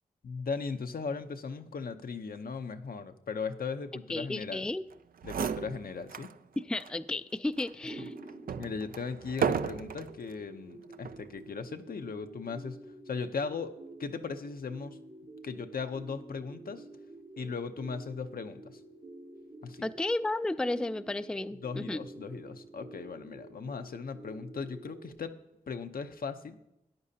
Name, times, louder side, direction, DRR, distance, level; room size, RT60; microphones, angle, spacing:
voice 1, 0.2-4.6 5.2-6.3 8.0-8.1 8.6-13.7 14.0-15.0 15.4-16.8 17.4-18.8 19.6-19.9 21.6-25.3 25.7-26.6, left 5 dB, 70° left, 8 dB, 0.7 m, -38 dB
voice 2, 4.1-4.8 6.6-8.1 19.8-22.0, left 2 dB, 5° left, 12 dB, 0.3 m, -33 dB
sound 1, 4.9-5.0 5.2-6.3 6.8-6.9 7.6-10.2 10.9-11.3, right 7 dB, 65° right, 0.4 m, -34 dB
sound 2, 7.8-25.1, right 2 dB, 85° right, 2.2 m, -49 dB
13.5 x 9.8 x 2.8 m, 0.84 s
cardioid pair, 50°, 16 cm